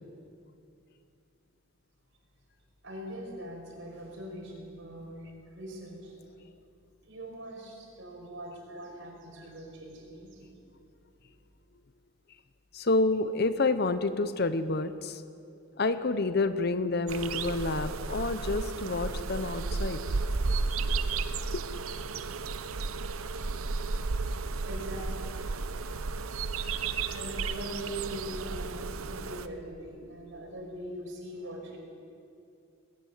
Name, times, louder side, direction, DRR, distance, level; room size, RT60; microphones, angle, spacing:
voice 1, 2.8-6.2 7.0-10.5 24.6-25.3 25.6-25.8 26.6-31.8, equal, 60° right, 0 dB, 5.5 m, -42 dB
voice 2, 12.7-15.2 15.8-20.0 21.5-21.6, left 3 dB, 45° left, 12 dB, 0.7 m, -28 dB
sound 1, 17.1-29.5, right 4 dB, 80° right, 0.8 m, -33 dB
20.5 x 15.0 x 9.3 m, 2.5 s
head